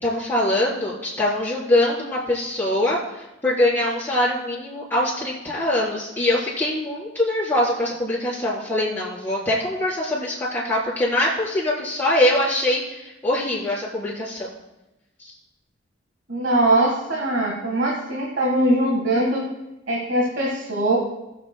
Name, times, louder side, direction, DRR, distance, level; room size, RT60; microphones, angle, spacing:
voice 1, 0.0-14.5 15.2-15.3, left 1 dB, 10° left, -8 dB, 3.9 m, -23 dB
voice 2, 16.3-19.4 19.9-21.0, right 1 dB, 60° right, -2 dB, 1.5 m, -21 dB
20.5 x 7.7 x 2.2 m, 0.96 s
head